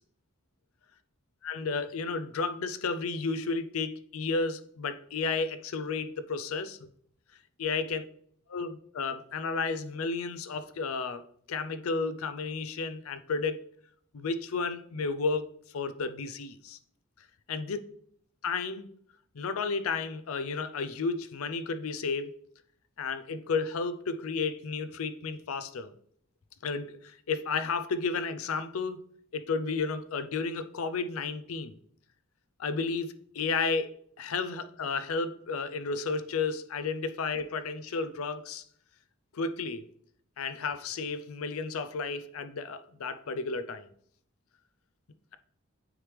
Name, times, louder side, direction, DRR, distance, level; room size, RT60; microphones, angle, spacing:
voice 1, 1.4-6.9 7.6-8.1 8.5-13.6 14.1-15.5 15.7-16.8 17.5-17.8 18.4-18.9 19.3-22.3 23.0-25.9 26.6-29.0 29.3-31.7 32.6-38.6 39.3-39.8 40.4-43.9, left 4 dB, 85° left, 0.5 m, -32 dB
9.1 x 3.2 x 3.3 m
head